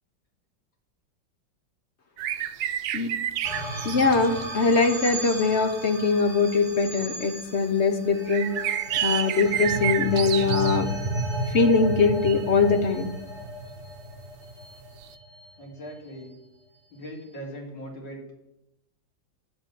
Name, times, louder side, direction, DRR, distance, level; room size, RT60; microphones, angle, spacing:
sound 1, 2.2-4.4 5.4-5.5 6.3-6.4 8.3-10.8 12.3-12.4 15.0-15.1, right 12 dB, 75° right, 1.2 m, -29 dB
sound 2, 3.4-15.9, right 1 dB, ahead, 3.6 m, -34 dB
voice 1, 3.8-8.6 9.0-10.9 11.5-13.1, left 4 dB, 45° left, 6 dB, 1.1 m, -22 dB
voice 2, 15.6-16.3 16.9-18.3, equal, 80° left, -1 dB, 4.0 m, -40 dB
9.9 x 7.6 x 9.3 m, 0.88 s
omnidirectional pair, 2.1 m